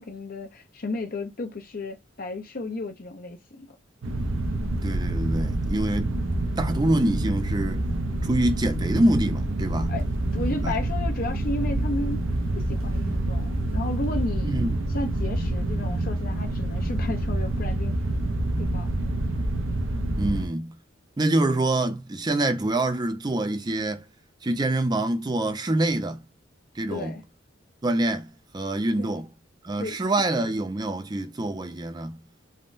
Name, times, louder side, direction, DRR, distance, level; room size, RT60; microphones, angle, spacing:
voice 1, 0.0-3.8 9.9-10.1 10.3-17.9 18.6-18.9 26.9-27.2 29.0-29.1 29.8-30.0, left 2 dB, 50° left, 0.5 m, -33 dB
sound 1, 4.0-20.5, right 1 dB, 85° right, 0.6 m, -27 dB
voice 2, 4.8-6.1 6.6-7.9 8.2-9.9 10.6-10.7 14.4-14.7 20.2-20.8 21.2-24.0 24.4-26.2 26.8-27.1 27.8-29.3 29.6-32.2, right 1 dB, 20° right, 0.5 m, -25 dB
3.5 x 2.1 x 2.5 m
head